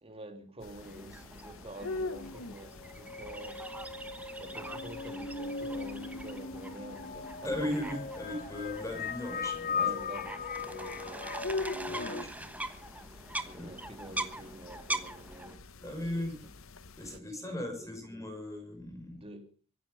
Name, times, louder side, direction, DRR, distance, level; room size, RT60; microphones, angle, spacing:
voice 1, 0.0-3.7 4.4-7.8 9.7-12.3 13.3-16.5 17.1-18.0 19.1-19.5, right 1 dB, 30° right, 2.9 m, -48 dB
sound 1, 0.6-17.2, left 3 dB, 80° left, 1.0 m, -45 dB
sound 2, 0.8-15.6, right 2 dB, 5° right, 1.2 m, -43 dB
sound 3, 2.6-12.2, left 5 dB, 40° left, 0.8 m, -38 dB
voice 2, 7.4-9.9 11.0-11.1 11.8-12.5 13.5-13.7 15.8-16.4 17.0-19.2, left 1 dB, 15° left, 5.7 m, -37 dB
24.0 x 10.0 x 5.5 m
head